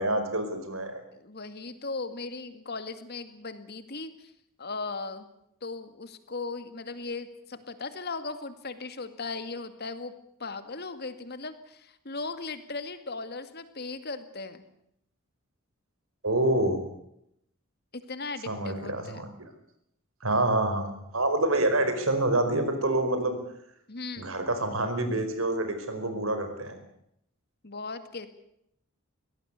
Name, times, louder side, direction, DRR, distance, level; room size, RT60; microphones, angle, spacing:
voice 1, 0.0-1.0 16.2-16.8 18.5-19.3 20.2-23.4 24.2-26.8, right 1 dB, 75° right, 8 dB, 4.8 m, -27 dB
voice 2, 1.1-4.3 4.6-5.3 5.6-10.1 10.4-14.7 17.9-19.2 23.9-24.3 27.6-28.3, left 3 dB, 50° left, 10 dB, 2.2 m, -37 dB
23.0 x 18.0 x 8.3 m, 0.76 s
head